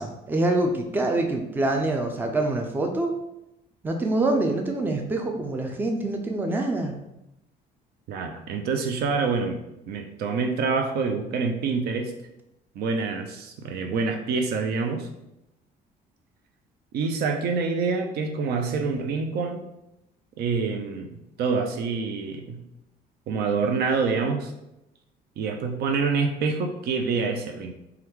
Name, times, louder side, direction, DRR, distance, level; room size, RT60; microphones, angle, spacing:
voice 1, 0.0-3.1 3.8-7.0, right 2 dB, 10° right, 3 dB, 0.4 m, -25 dB
voice 2, 8.1-9.6 9.9-12.1 12.7-15.1 16.9-19.6 20.4-22.6 23.3-24.5 25.4-27.7, right 4 dB, 70° right, 5 dB, 0.5 m, -26 dB
2.9 x 2.3 x 3.5 m, 0.89 s
cardioid pair, 110°, 17 cm